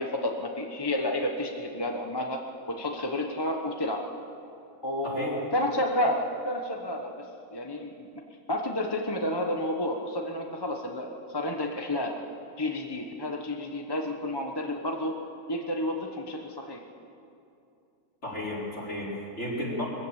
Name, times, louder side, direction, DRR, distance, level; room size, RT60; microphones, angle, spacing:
voice 1, 0.0-4.0 4.8-8.2 8.5-12.2 12.6-15.2 15.5-16.8, left 1 dB, 15° left, 2 dB, 1.1 m, -31 dB
voice 2, 5.0-5.4 18.2-19.9, left 1 dB, 45° left, -5 dB, 4.8 m, -33 dB
21.5 x 15.0 x 8.3 m, 2.6 s
omnidirectional pair, 1.6 m